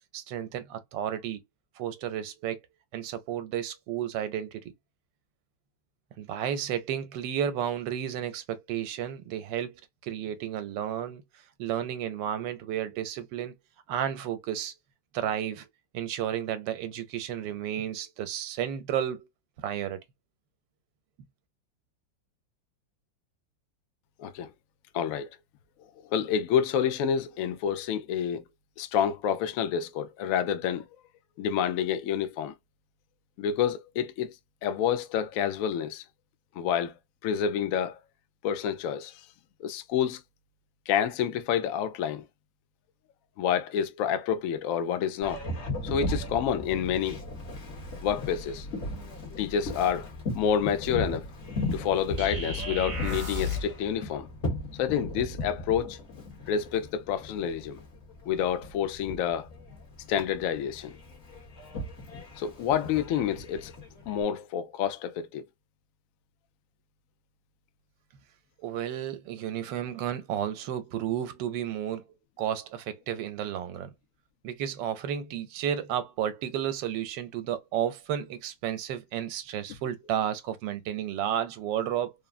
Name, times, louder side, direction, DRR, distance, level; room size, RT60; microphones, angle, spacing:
voice 1, 0.1-1.4 1.8-2.6 2.9-4.6 6.2-11.2 11.6-13.5 13.9-14.7 15.1-15.7 15.9-19.3 19.6-20.0 68.6-72.1 72.4-73.9 74.4-82.1, right 10 dB, 85° right, 1.3 m, -32 dB
voice 2, 24.2-24.5 24.9-25.3 26.1-28.4 28.8-30.9 31.4-32.5 33.4-34.3 34.6-36.0 36.6-36.9 37.2-38.0 38.4-39.1 39.6-40.2 40.9-42.2 43.4-45.4 45.8-47.2 48.0-48.7 49.4-50.1 50.4-51.3 51.7-54.3 54.8-56.0 56.5-57.8 58.3-59.5 60.1-61.0 62.4-63.7 64.1-65.4, left 8 dB, 75° left, 0.7 m, -28 dB
Boat Water vehicle, 45.2-64.2, left 1 dB, 45° left, 1.2 m, -37 dB
sound 1, 52.2-53.8, left 2 dB, 60° right, 0.3 m, -33 dB
3.6 x 2.0 x 2.3 m
omnidirectional pair, 2.0 m